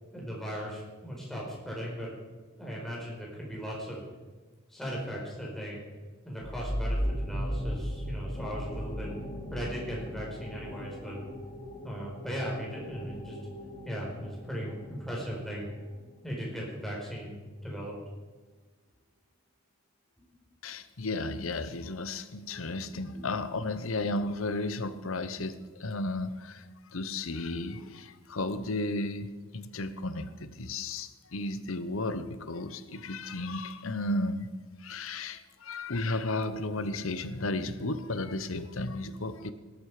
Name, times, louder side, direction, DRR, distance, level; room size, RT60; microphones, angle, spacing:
voice 1, 0.1-2.2 2.6-4.0 4.7-5.8 6.2-9.1 9.5-11.2 11.8-13.4 13.8-15.7 16.2-17.9 22.9-23.3, equal, ahead, -4 dB, 4.9 m, -38 dB
sound 1, 6.4-15.7, equal, 20° left, 2.6 m, -37 dB
voice 2, 20.6-26.7 26.9-34.5 34.8-39.5, left 2 dB, 75° left, 12 dB, 1.0 m, -34 dB
18.5 x 12.5 x 5.0 m, 1.3 s
head